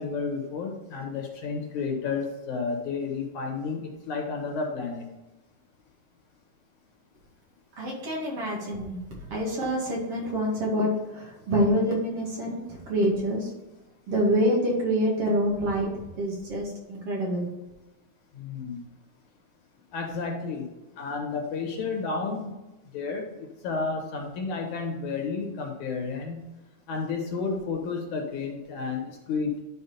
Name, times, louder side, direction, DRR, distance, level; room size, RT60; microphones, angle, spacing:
voice 1, 0.0-5.1 18.4-18.8 19.9-20.7 21.0-22.5 22.9-26.4 26.9-29.6, left 4 dB, 70° left, 2 dB, 2.6 m, -31 dB
voice 2, 7.8-9.0 9.3-13.5 14.1-17.5, equal, 50° right, -3 dB, 2.7 m, -26 dB
11.0 x 4.7 x 4.3 m, 1.0 s
omnidirectional pair, 3.7 m